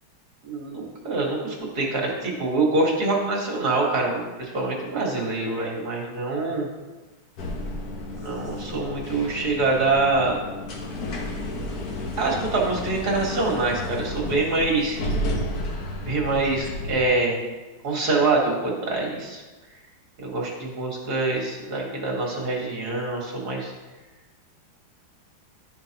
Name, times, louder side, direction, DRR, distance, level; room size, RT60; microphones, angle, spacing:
voice 1, 0.4-6.7 8.1-10.4 12.2-15.0 16.0-17.4 17.8-19.4 20.2-23.7, right 3 dB, 50° right, -1 dB, 1.8 m, -25 dB
sound 1, 7.4-17.1, left 1 dB, 55° left, 1.2 m, -32 dB
11.5 x 5.1 x 2.8 m, 1.2 s
omnidirectional pair, 2.3 m